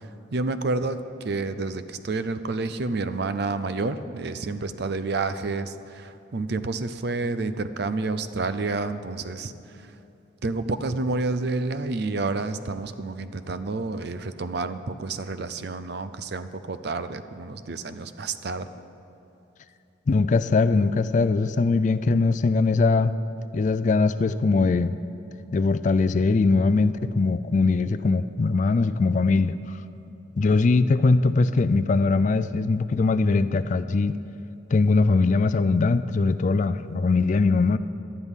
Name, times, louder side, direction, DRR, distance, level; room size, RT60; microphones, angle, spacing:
voice 1, 0.0-9.5 10.4-18.7, right 3 dB, 55° right, 11 dB, 0.5 m, -29 dB
voice 2, 20.1-23.2 23.5-25.0 25.5-29.8 30.4-34.2 34.7-37.8, left 3 dB, 40° left, 13 dB, 0.3 m, -21 dB
18.0 x 12.0 x 3.7 m, 2.9 s
head